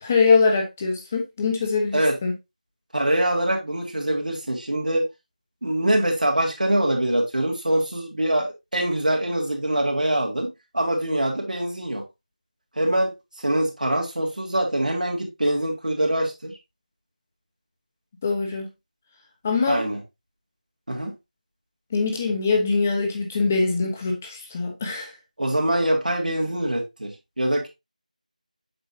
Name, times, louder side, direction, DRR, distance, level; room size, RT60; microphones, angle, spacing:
voice 1, 0.0-2.3 18.2-18.7 19.4-19.8 21.9-25.1, left 4 dB, 15° left, 1.1 m, -23 dB
voice 2, 2.9-5.1 5.6-12.0 12.8-13.1 13.4-16.6 19.7-20.0 20.9-21.1 25.4-27.7, right 1 dB, 75° right, 2.6 m, -24 dB
7.8 x 5.3 x 2.8 m
figure-of-eight pair, 175°, 4 cm